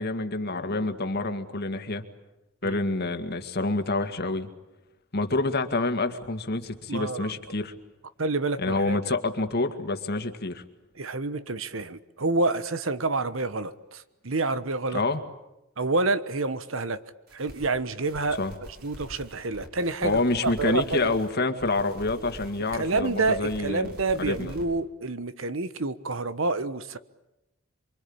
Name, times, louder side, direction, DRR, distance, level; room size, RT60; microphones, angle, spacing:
voice 1, 0.0-2.0 2.6-4.5 5.1-7.7 8.6-10.6 14.9-15.2 18.4-18.5 20.0-23.9 24.2-24.5, left 2 dB, 50° left, 8 dB, 2.1 m, -27 dB
voice 2, 6.9-7.3 8.2-9.2 11.0-15.0 15.8-17.0 17.3-18.4 18.8-21.1 22.7-27.0, right 3 dB, 70° right, 13 dB, 1.2 m, -28 dB
sound 1, 17.3-17.7 18.0-21.3 21.6-24.6, equal, 50° right, 7.1 m, -45 dB
28.0 x 24.0 x 8.8 m, 0.94 s
head